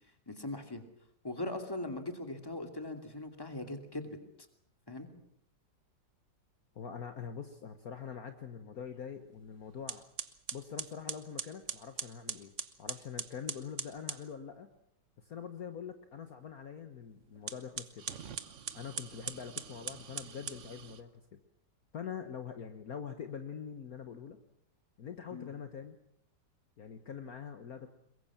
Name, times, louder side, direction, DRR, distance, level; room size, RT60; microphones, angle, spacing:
voice 1, 0.3-0.8 1.2-4.2 4.9-5.1 25.3-25.5, left 2 dB, 10° left, 6 dB, 2.6 m, -40 dB
voice 2, 6.8-10.0 10.5-12.5 12.8-14.7 15.2-18.1 18.7-21.4 21.9-24.4 25.0-26.0 26.8-27.9, left 7 dB, 55° left, 8 dB, 1.6 m, -44 dB
sound 1, 9.3-9.5 9.9-14.3 17.3-21.0, right 7 dB, 45° right, 1.2 m, -41 dB
22.5 x 22.5 x 7.4 m, 0.71 s
omnidirectional pair, 2.0 m